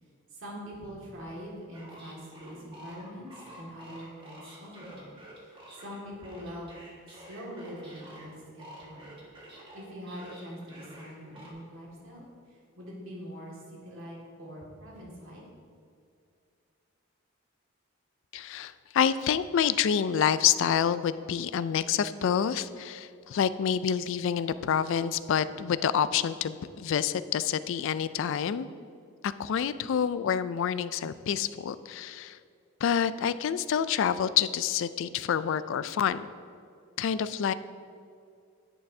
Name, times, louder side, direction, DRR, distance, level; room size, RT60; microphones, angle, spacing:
voice 1, 0.3-5.1 5.4-6.8 7.1-8.3 8.8-9.1 9.7-15.4, equal, 65° right, -4 dB, 2.0 m, -43 dB
sound 1, 1.7-8.3 8.6-11.5, right 1 dB, 25° right, 1.6 m, -49 dB
voice 2, 18.3-28.7 29.2-32.4 32.8-36.3 37.0-37.5, left 8 dB, 65° left, 14 dB, 0.3 m, -27 dB
10.0 x 9.0 x 2.7 m, 2.4 s
head